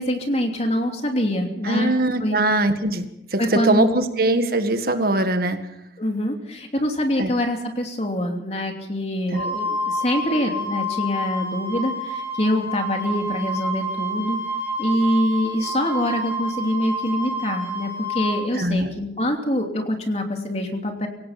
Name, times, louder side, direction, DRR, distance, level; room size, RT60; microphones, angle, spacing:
voice 1, 0.0-1.9 2.2-2.4 3.4-4.0 6.0-14.4 14.8-21.1, left 1 dB, 35° left, 3 dB, 3.0 m, -24 dB
voice 2, 1.6-5.6 7.2-7.3 9.3-9.5 18.6-18.9, right 2 dB, 55° right, 7 dB, 1.8 m, -22 dB
Wind instrument woodwind instrument, 9.3-18.3, equal, 15° left, 5.6 m, -29 dB
25.5 x 17.0 x 5.9 m, 0.82 s
head